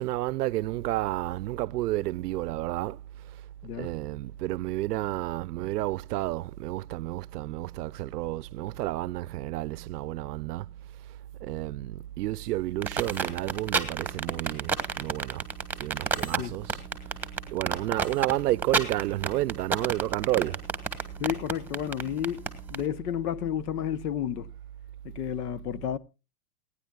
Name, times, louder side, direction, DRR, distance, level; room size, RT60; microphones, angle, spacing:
voice 1, 0.0-3.0 3.8-10.8 11.4-15.4 15.8-16.8 17.5-20.7, right 16 dB, 85° right, 0.6 m, -31 dB
sound 1, 12.8-22.8, right 5 dB, 5° right, 1.3 m, -29 dB
voice 2, 21.2-22.4 22.7-24.5 25.0-26.0, left 10 dB, 80° left, 1.0 m, -31 dB
28.5 x 10.0 x 2.3 m
supercardioid pair, 130°, 46 cm